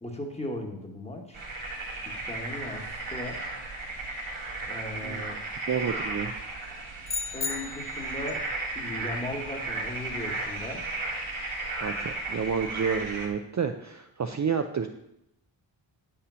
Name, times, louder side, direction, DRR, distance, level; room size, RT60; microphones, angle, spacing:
voice 1, 0.0-1.4 2.0-3.4 4.7-5.4 7.3-8.5 8.7-10.9, left 1 dB, 15° left, 2 dB, 1.3 m, -37 dB
sound 1, 1.3-13.3, right 2 dB, 90° right, 1.9 m, -35 dB
voice 2, 5.7-6.3 11.8-14.9, right 6 dB, 40° right, 6 dB, 0.5 m, -30 dB
sound 2, 7.1-8.2, left 5 dB, 30° left, 0.3 m, -34 dB
8.3 x 5.8 x 6.2 m, 0.81 s
wide cardioid pair, 145°, 47 cm